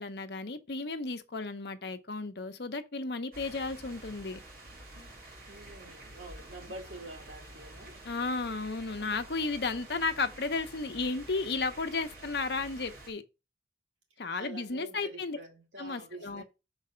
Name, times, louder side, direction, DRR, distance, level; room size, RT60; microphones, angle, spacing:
voice 1, 0.0-4.4 8.0-13.2 14.2-15.4 15.8-16.4, left 3 dB, 60° left, 0.8 m, -34 dB
sound 1, 3.3-13.1, right 1 dB, 50° right, 2.2 m, -49 dB
voice 2, 5.5-8.0 14.4-16.4, right 2 dB, 85° right, 2.5 m, -47 dB
6.0 x 4.1 x 5.5 m
head